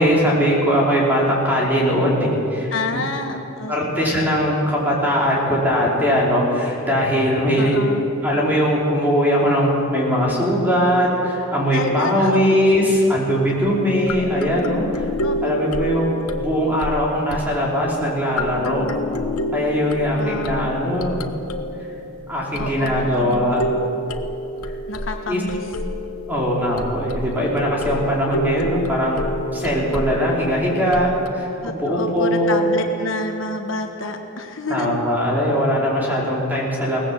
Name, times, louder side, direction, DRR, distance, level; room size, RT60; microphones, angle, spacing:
voice 1, 0.0-3.0 3.7-7.8 8.2-15.0 15.4-16.1 16.4-18.8 19.5-21.2 22.3-23.7 25.3-25.4 26.3-29.3 29.5-32.7 34.7-37.0, equal, 10° right, -4 dB, 4.9 m, -20 dB
voice 2, 2.7-4.1 7.6-8.1 11.7-12.4 15.2-15.3 20.2-20.7 22.6-23.6 24.9-25.6 31.6-35.0, left 2 dB, 60° left, 4 dB, 1.4 m, -28 dB
sound 1, 13.5-13.7 14.1-18.1 18.4-31.3, left 1 dB, 90° left, 1.1 m, -29 dB
22.5 x 18.5 x 7.9 m, 2.9 s
head